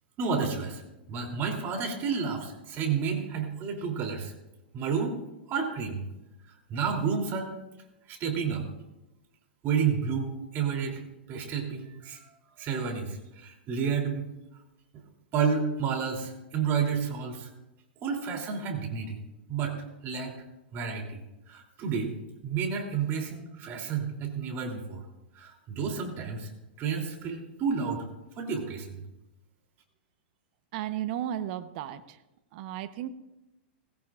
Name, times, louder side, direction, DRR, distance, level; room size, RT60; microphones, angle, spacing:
voice 1, 0.2-0.8 1.1-4.3 4.7-5.1 5.5-6.0 6.4-7.5 8.1-8.6 9.6-11.0 11.3-12.3 12.6-14.3 15.3-17.5 18.0-19.2 19.5-19.8 20.0-20.3 20.7-21.2 21.5-22.1 22.4-25.0 25.3-26.5 26.8-28.1 28.4-29.0, right 6 dB, 35° right, 2 dB, 3.2 m, -30 dB
voice 2, 30.7-32.2 32.5-33.1, right 11 dB, 50° right, 11 dB, 1.0 m, -34 dB
19.5 x 16.5 x 2.5 m, 0.98 s
hypercardioid pair, 125°, 6 cm